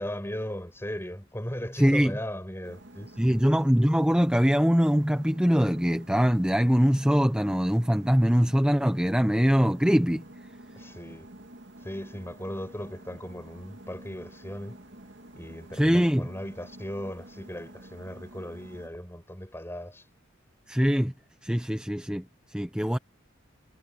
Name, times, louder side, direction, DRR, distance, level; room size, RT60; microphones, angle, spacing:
voice 1, 0.0-3.5 10.8-11.3 11.8-14.8 15.3-20.1, equal, 15° left, 7.5 m, -37 dB
voice 2, 1.8-2.1 3.2-10.2 15.7-16.2 20.7-21.1 21.4-22.2 22.5-23.0, equal, 5° right, 0.9 m, -22 dB
sound 1, 2.6-18.9, right 1 dB, 65° right, 2.8 m, -49 dB
head